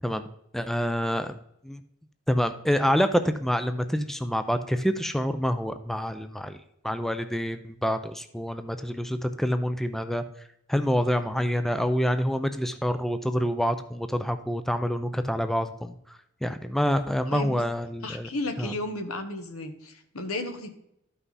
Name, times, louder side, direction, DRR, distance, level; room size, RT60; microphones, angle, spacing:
voice 1, 0.5-1.3 1.6-1.8 2.3-6.6 6.8-10.2 10.7-15.9 16.4-18.3 18.6-18.7, equal, ahead, 9 dB, 0.4 m, -27 dB
voice 2, 17.3-17.6 18.0-20.8, left 2 dB, 80° left, 7 dB, 1.3 m, -34 dB
12.5 x 5.7 x 4.0 m, 0.77 s
head